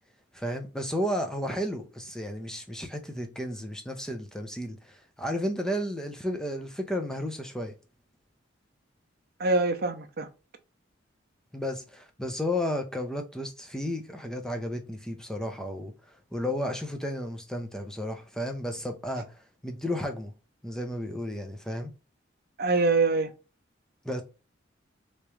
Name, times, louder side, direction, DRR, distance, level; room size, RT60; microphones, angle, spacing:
voice 1, 0.3-7.7 11.5-20.3 20.6-21.9 24.0-24.2, left 1 dB, 5° left, 0.5 m, -33 dB
voice 2, 9.4-10.3 22.6-23.3, right 3 dB, 50° right, 0.6 m, -24 dB
3.4 x 3.0 x 3.0 m
head